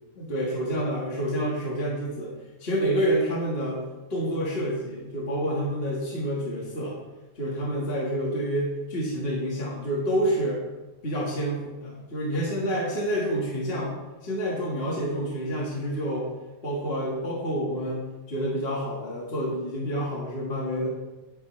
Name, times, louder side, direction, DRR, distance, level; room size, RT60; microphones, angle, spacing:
voice 1, 0.1-2.3 2.6-3.8 4.1-7.0 7.3-10.6 11.0-13.9 14.2-16.3 16.6-20.9, equal, 30° left, -4 dB, 1.3 m, -28 dB
10.5 x 10.5 x 3.2 m, 1.1 s
omnidirectional pair, 3.3 m